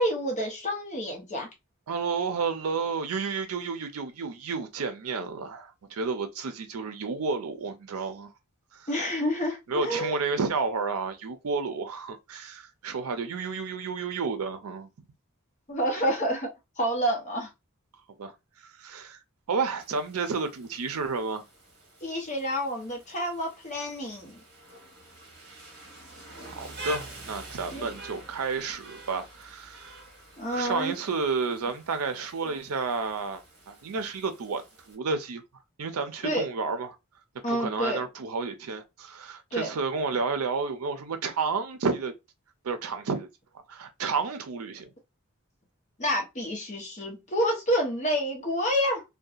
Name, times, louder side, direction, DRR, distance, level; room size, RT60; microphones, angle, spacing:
voice 1, 0.0-1.5 8.9-10.1 15.7-17.5 22.0-24.4 27.7-27.9 30.4-30.9 36.2-36.4 37.4-38.0 39.5-39.7 46.0-49.0, equal, 35° left, 0.8 m, -28 dB
voice 2, 1.9-8.3 8.7-8.9 9.7-14.9 18.2-18.3 18.8-19.2 19.5-21.4 26.4-29.9 30.5-35.4 35.8-37.0 37.5-42.1 42.6-43.3 43.7-44.9, right 4 dB, 80° right, 0.5 m, -31 dB
Rain, 19.8-34.9, right 2 dB, 50° right, 1.0 m, -47 dB
2.7 x 2.2 x 2.3 m
head